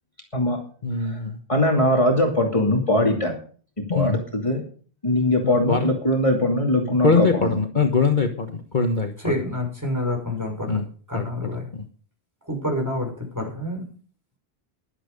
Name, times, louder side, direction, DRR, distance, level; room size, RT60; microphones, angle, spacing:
voice 1, 0.8-1.3 3.9-4.1 5.4-5.8 7.0-9.3 10.7-10.8 11.1-11.2, left 4 dB, 50° left, 4 dB, 1.4 m, -22 dB
voice 2, 1.5-3.3 3.9-4.6 5.0-7.6, left 1 dB, 30° left, 0 dB, 2.7 m, -21 dB
voice 3, 9.2-10.8 11.1-11.7 12.5-13.8, left 1 dB, 15° right, 1 dB, 6.2 m, -28 dB
15.0 x 11.5 x 5.2 m, 0.44 s
omnidirectional pair, 1.1 m